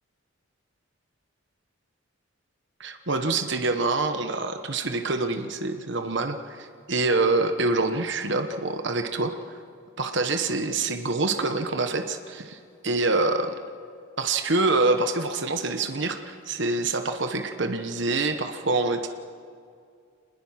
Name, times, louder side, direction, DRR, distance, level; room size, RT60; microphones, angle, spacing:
voice 1, 2.8-9.3 10.0-12.6 12.8-13.5 14.2-19.1, right 3 dB, 55° right, 7 dB, 1.2 m, -26 dB
25.5 x 20.5 x 5.9 m, 2.3 s
head